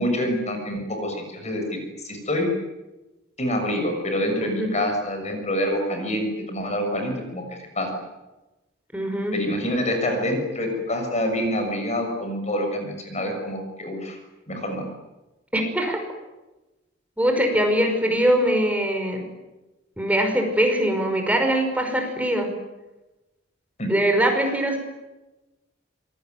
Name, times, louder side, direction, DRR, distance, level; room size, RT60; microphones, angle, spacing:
voice 1, 0.0-1.8 2.0-2.5 3.4-7.9 9.3-14.2 14.5-14.9 23.8-23.9, equal, 35° left, 4 dB, 6.6 m, -26 dB
voice 2, 8.9-9.4 15.5-16.0 17.2-19.2 20.0-22.5 23.9-24.8, right 1 dB, 10° right, 4 dB, 5.4 m, -22 dB
27.0 x 23.0 x 9.4 m, 1.1 s
head